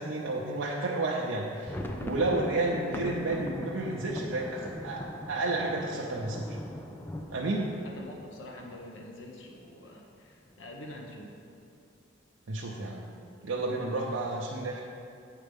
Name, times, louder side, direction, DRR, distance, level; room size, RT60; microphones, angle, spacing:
voice 1, 0.0-1.7 2.0-6.6 7.3-7.7 12.5-13.1 13.4-14.8, right 2 dB, 85° right, -4 dB, 0.7 m, -31 dB
sound 1, 1.4-9.0 9.4-9.5 9.7-10.0 10.5-11.0, left 1 dB, 10° left, 0.4 m, -41 dB
voice 2, 7.8-11.4, left 1 dB, 75° left, 1 dB, 0.8 m, -46 dB
8.4 x 4.5 x 5.2 m, 2.5 s
head